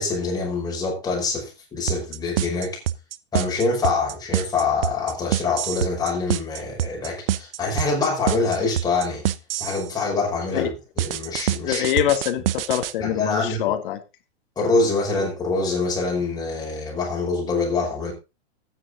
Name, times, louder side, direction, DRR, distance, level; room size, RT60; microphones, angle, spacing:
voice 1, 0.0-2.8 3.3-9.2 9.6-10.7 11.0-11.9 13.0-13.6 14.6-18.1, left 3 dB, 10° left, 5.6 m, -25 dB
sound 1, 1.9-9.9 11.0-12.9, right 12 dB, 60° right, 0.9 m, -25 dB
voice 2, 11.6-14.0, left 12 dB, 50° left, 1.9 m, -24 dB
12.5 x 9.6 x 3.8 m
hypercardioid pair, 155°, 33 cm